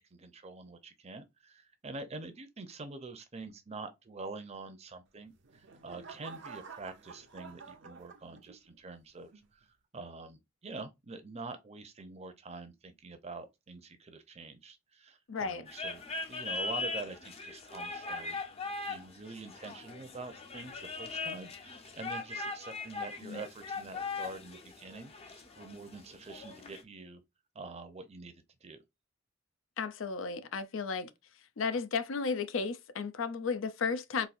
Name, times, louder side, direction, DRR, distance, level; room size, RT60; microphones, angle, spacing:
voice 1, 0.0-9.7 9.9-16.0 16.3-27.2 27.5-28.8, right 3 dB, 35° right, 0.7 m, -46 dB
sound 1, 5.2-8.8 9.3-9.7, right 5 dB, 65° right, 0.7 m, -50 dB
voice 2, 15.3-15.6 23.2-23.4 29.8-31.1 31.6-34.3, left 5 dB, 70° left, 0.5 m, -34 dB
sound 2, 15.7-26.8, left 3 dB, 30° left, 0.7 m, -40 dB
4.1 x 2.6 x 2.5 m
head